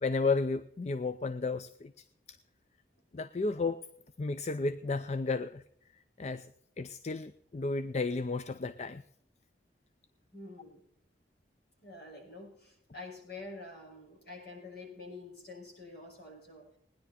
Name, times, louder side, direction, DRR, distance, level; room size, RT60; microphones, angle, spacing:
voice 1, 0.0-1.9 3.1-3.8 4.2-5.6 6.2-6.5 6.8-9.0, left 3 dB, 40° left, 13 dB, 0.5 m, -32 dB
voice 2, 10.3-10.8 11.8-16.8, left 3 dB, 60° left, 0 dB, 5.9 m, -47 dB
19.0 x 10.5 x 4.2 m, 0.72 s
head